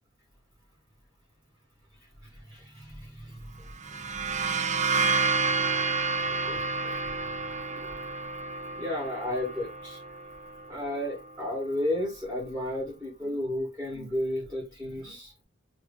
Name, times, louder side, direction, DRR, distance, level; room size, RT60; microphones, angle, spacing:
voice 1, 2.5-3.5 3.8-3.9 6.4-6.9 7.8-7.9 8.8-10.0 10.7-15.3, left 1 dB, 10° right, 1.4 m, -33 dB
sound 1, 3.7-11.3, right 4 dB, 35° right, 0.4 m, -30 dB
3.0 x 2.5 x 3.7 m
head